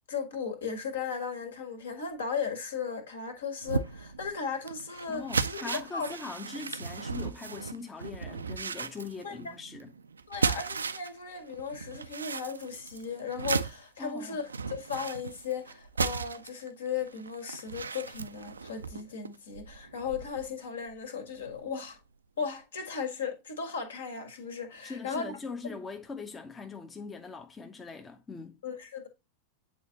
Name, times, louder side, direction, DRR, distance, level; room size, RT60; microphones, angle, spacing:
voice 1, 0.1-6.2 9.2-9.5 10.3-22.0 22.4-25.3 25.6-25.8 28.6-29.1, left 6 dB, 65° left, 1.7 m, -36 dB
sound 1, 3.6-11.2 11.5-20.5 20.9-21.0 21.4-21.6, right 5 dB, 75° right, 0.4 m, -36 dB
voice 2, 5.1-9.9 14.0-14.4 24.8-28.6, left 4 dB, 15° left, 0.7 m, -41 dB
8.6 x 4.0 x 2.7 m
figure-of-eight pair, 90°, 0 cm